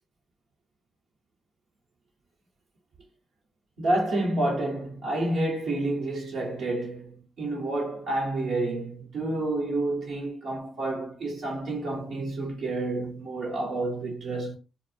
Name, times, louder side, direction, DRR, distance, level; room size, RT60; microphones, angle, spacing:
voice 1, 3.8-14.6, right 2 dB, 70° right, 0.9 m, -29 dB
2.0 x 2.0 x 3.1 m
hypercardioid pair, 40°, 0 cm